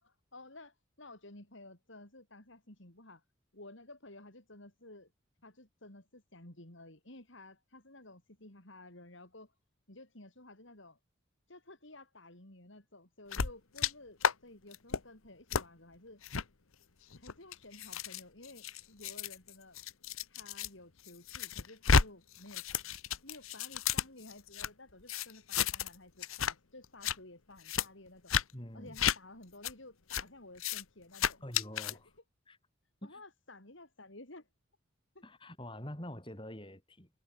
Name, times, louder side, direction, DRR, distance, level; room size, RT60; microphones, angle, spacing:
voice 1, 0.0-3.2 3.5-5.1 5.4-9.5 9.9-11.0 11.5-16.2 17.1-19.8 20.3-22.6 23.2-28.3 28.7-31.4 31.9-32.0 33.0-34.5 35.1-35.2, left 2 dB, 60° left, 4.3 m, -53 dB
sound 1, 13.3-13.9 14.2-14.3 14.7-15.0 15.5-15.6 16.2-16.4 17.1-20.7 21.0-22.1 22.3-24.7 25.1-26.0 26.2-26.5 26.8-27.2 27.7-27.9 28.3-28.4 29.0-29.2 29.6-29.7 30.1-30.2 30.6-30.8 31.1-31.9, left 6 dB, 80° left, 1.2 m, -32 dB
voice 2, 28.5-29.0 31.4-32.1 32.5-32.6 33.0-33.2 35.2-37.1, left 1 dB, 25° left, 5.5 m, -45 dB
head